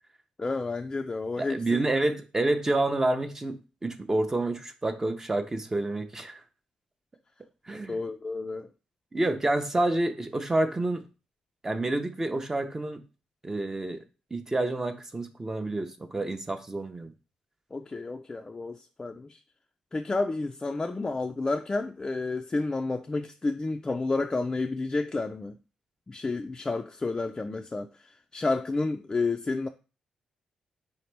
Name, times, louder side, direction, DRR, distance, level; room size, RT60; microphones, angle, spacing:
voice 1, 0.4-1.8 7.7-8.7 17.7-19.4 19.9-25.5 26.1-29.7, left 3 dB, 25° left, 0.3 m, -30 dB
voice 2, 1.4-6.4 7.7-8.0 9.1-11.0 11.6-13.0 13.4-14.0 14.3-17.1, right 2 dB, 20° right, 0.5 m, -28 dB
4.3 x 2.8 x 3.3 m
cardioid pair, 70°, 2 cm